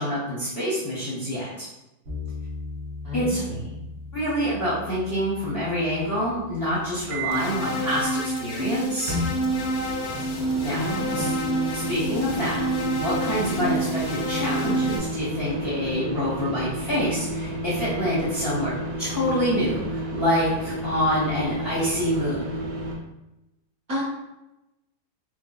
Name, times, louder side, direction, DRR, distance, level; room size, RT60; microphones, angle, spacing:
voice 1, 0.0-1.7 3.1-3.4 4.1-9.1 10.3-10.8 11.1-11.3 11.7-12.6 12.9-22.5, equal, 45° left, -9 dB, 0.9 m, -26 dB
sound 1, 2.1-10.2, left 3 dB, 60° right, 1.4 m, -40 dB
voice 2, 3.0-3.6 10.7-11.3 23.9-24.0, equal, 40° right, -10 dB, 1.2 m, -30 dB
sound 2, 7.1-7.5 9.1-23.0, right 1 dB, 75° right, 1.2 m, -31 dB
sound 3, 7.3-15.0, right 1 dB, 70° left, 0.9 m, -28 dB
4.5 x 2.3 x 2.3 m, 0.94 s
omnidirectional pair, 1.9 m